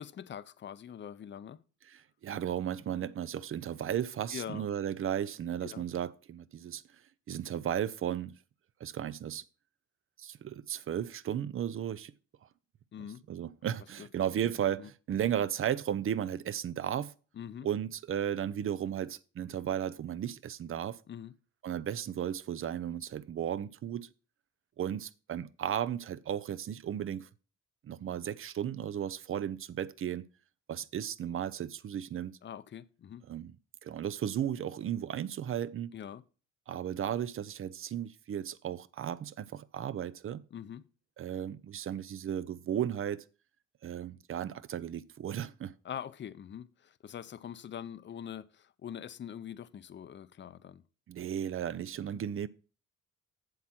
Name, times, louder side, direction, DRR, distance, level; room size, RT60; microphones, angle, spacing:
voice 1, 0.0-1.6 4.3-4.6 5.6-5.8 12.9-13.2 14.0-14.1 14.8-14.9 17.4-17.7 21.1-21.3 32.4-33.2 35.9-36.2 40.5-40.8 45.8-50.8, left 9 dB, 40° left, 0.6 m, -43 dB
voice 2, 1.9-6.8 7.3-8.4 8.8-9.4 10.2-12.1 13.3-17.1 17.6-21.0 21.6-24.1 24.8-27.3 27.8-30.3 30.7-32.4 33.3-33.6 33.8-35.9 36.7-40.4 41.2-43.3 43.8-45.7 51.1-52.5, right 10 dB, 45° right, 0.5 m, -35 dB
7.8 x 7.5 x 4.3 m
cardioid pair, 90°, 30 cm